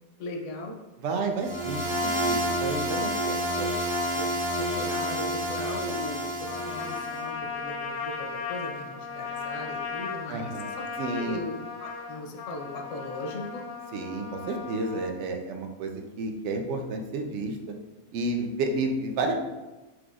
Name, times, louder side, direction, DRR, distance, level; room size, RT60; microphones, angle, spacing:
voice 1, 0.2-0.7 4.1-4.2 4.6-8.1 8.5-10.8 11.2-13.6, left 2 dB, 90° left, 2 dB, 1.0 m, -38 dB
voice 2, 1.0-3.8 10.3-10.7 11.0-11.4 13.9-17.7 18.1-19.4, right 2 dB, 75° right, 3 dB, 0.9 m, -31 dB
sound 1, 1.4-7.2, equal, 40° right, 0.5 m, -29 dB
Trumpet, 6.4-15.1, left 5 dB, 60° left, 0.6 m, -36 dB
4.5 x 2.5 x 2.4 m, 1.1 s
omnidirectional pair, 1.2 m